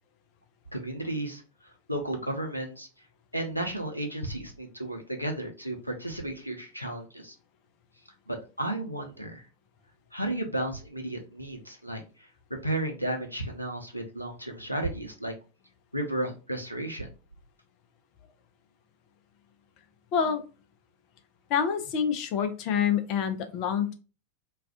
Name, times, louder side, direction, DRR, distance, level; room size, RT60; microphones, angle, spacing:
voice 1, 0.7-1.4 1.9-2.9 3.3-7.4 8.3-9.4 10.1-12.0 12.6-15.3 15.9-17.1, right 1 dB, 90° left, 2 dB, 0.6 m, -33 dB
voice 2, 20.1-20.4 21.5-23.9, left 7 dB, 40° left, 7 dB, 0.6 m, -27 dB
2.4 x 2.3 x 3.5 m, 0.33 s
figure-of-eight pair, 90°, 0 cm